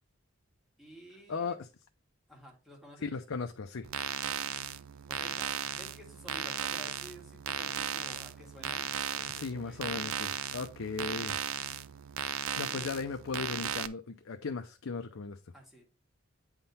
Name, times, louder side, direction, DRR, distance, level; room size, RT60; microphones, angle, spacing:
voice 1, 0.8-1.6 2.3-3.1 5.1-9.8 12.5-13.0 15.5-15.9, equal, ahead, 1.9 m, -52 dB
voice 2, 1.3-1.7 3.0-3.9 9.4-11.4 12.6-15.4, left 4 dB, 70° left, 0.5 m, -37 dB
sound 1, 3.8-13.9, right 9 dB, 85° right, 0.5 m, -36 dB
8.8 x 3.7 x 4.1 m
head